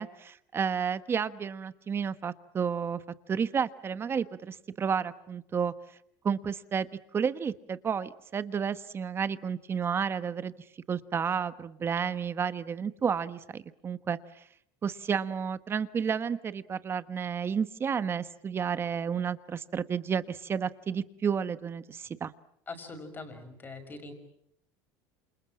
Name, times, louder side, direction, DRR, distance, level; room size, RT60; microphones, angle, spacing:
voice 1, 0.0-3.0 3.3-5.7 6.2-6.9 7.1-10.5 10.9-14.2 14.8-22.3, right 7 dB, 25° right, 13 dB, 1.2 m, -31 dB
voice 2, 22.7-24.1, left 3 dB, 20° left, 6 dB, 6.1 m, -42 dB
28.0 x 27.5 x 7.7 m, 0.73 s
cardioid pair, 135°, 9 cm